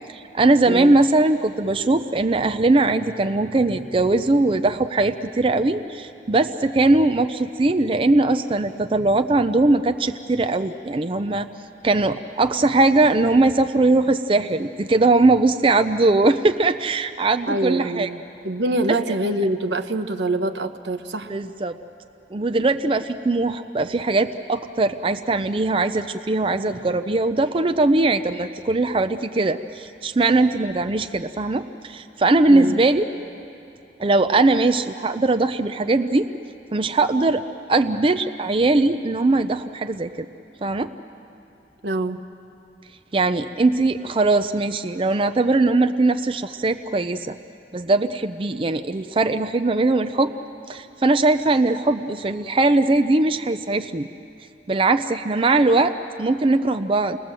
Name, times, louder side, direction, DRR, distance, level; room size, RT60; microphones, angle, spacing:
voice 1, 0.1-11.5 11.8-18.1 21.3-21.7 22.3-33.0 34.0-36.3 36.7-37.4 37.7-40.3 40.6-40.9 43.1-47.4 47.7-50.3 50.7-54.1 54.7-57.2, right 2 dB, 30° right, 9 dB, 0.5 m, -20 dB
voice 2, 17.5-21.3 32.5-32.8 41.8-42.2, right 2 dB, 80° right, 8 dB, 1.0 m, -25 dB
28.5 x 21.0 x 7.5 m, 2.7 s
head